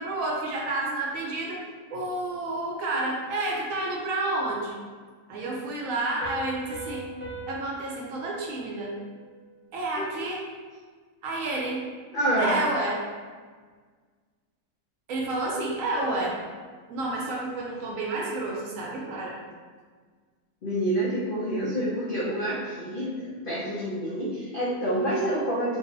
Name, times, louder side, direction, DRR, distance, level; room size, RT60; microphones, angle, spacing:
voice 1, 0.0-1.6 1.9-4.8 5.3-7.1 7.5-9.0 9.7-10.4 11.2-11.8 12.4-13.0 15.1-16.4 16.9-19.4, right 2 dB, 70° right, -2 dB, 0.9 m, -30 dB
Piano, 6.2-9.6, right 2 dB, 45° right, 0.4 m, -41 dB
voice 2, 12.1-12.6 20.6-25.8, right 1 dB, 75° left, -8 dB, 0.5 m, -28 dB
3.6 x 2.0 x 2.6 m, 1.6 s
omnidirectional pair, 1.6 m